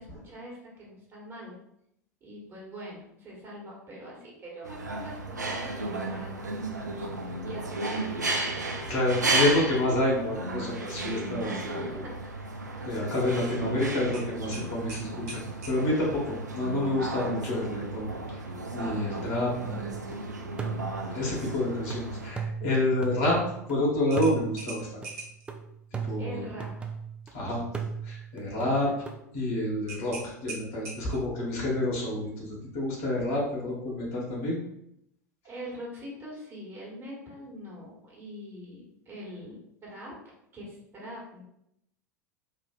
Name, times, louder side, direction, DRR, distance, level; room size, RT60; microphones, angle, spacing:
voice 1, 0.0-1.6 2.2-7.1 7.4-8.0 11.8-12.3 12.7-13.0 26.2-26.9 28.4-29.0 35.4-39.6 39.8-40.1 40.5-41.4, equal, 30° right, -4 dB, 1.3 m, -43 dB
sound 1, 4.6-22.3, right 2 dB, 85° right, 0.4 m, -34 dB
voice 2, 8.9-12.0 12.8-18.1 18.3-18.4 18.7-20.1 21.1-23.4 23.7-25.0 26.0-26.4 27.3-27.6 28.0-28.9 29.3-34.6, left 1 dB, 55° left, -4 dB, 1.2 m, -28 dB
sound 2, 14.1-15.8 18.4-18.6 19.1-19.2 24.1-25.5 29.9-31.3, right 3 dB, 55° right, 1.0 m, -42 dB
sound 3, 19.7-20.2 20.6-23.7 24.2-27.3 27.7-29.2, right 6 dB, 10° right, 0.3 m, -37 dB
3.3 x 2.5 x 2.4 m, 0.76 s
figure-of-eight pair, 80°, 9 cm